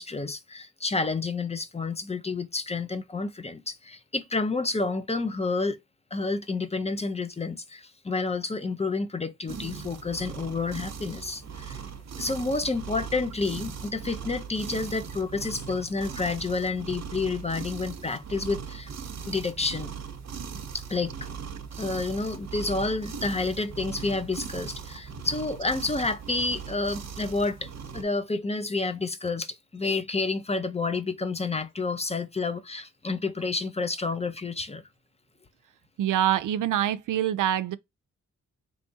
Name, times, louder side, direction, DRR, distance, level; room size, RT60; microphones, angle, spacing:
voice 1, 0.0-5.8 6.1-11.8 12.2-18.9 19.3-19.9 20.7-21.1 21.8-34.8, left 3 dB, 20° left, 0.6 m, -29 dB
sound 1, 9.5-28.0, right 6 dB, 55° right, 0.8 m, -39 dB
voice 2, 36.0-37.8, right 11 dB, 75° right, 0.5 m, -25 dB
3.4 x 3.1 x 2.7 m
cardioid pair, 70°, 32 cm